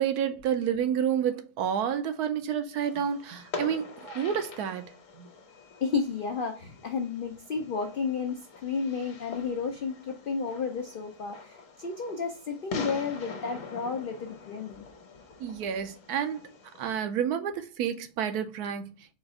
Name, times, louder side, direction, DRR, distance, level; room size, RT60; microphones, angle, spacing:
voice 1, 0.0-5.3 15.4-16.5 16.8-18.9, right 8 dB, 80° right, 1.1 m, -29 dB
Fireworks, 2.8-17.0, left 4 dB, 60° left, 1.2 m, -44 dB
voice 2, 5.8-14.8, left 5 dB, 75° left, 0.4 m, -32 dB
4.3 x 2.4 x 4.8 m
omnidirectional pair, 1.6 m